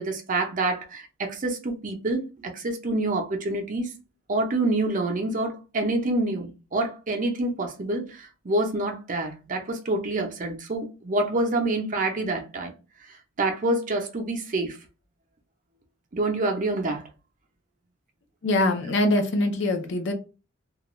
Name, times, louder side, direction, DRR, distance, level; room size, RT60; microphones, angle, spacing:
voice 1, 0.0-3.9 4.3-12.7 13.4-14.8 16.1-17.0, right 2 dB, 40° right, 0.5 m, -27 dB
voice 2, 18.4-20.1, left 1 dB, 60° left, 0.5 m, -23 dB
2.4 x 2.2 x 3.0 m
head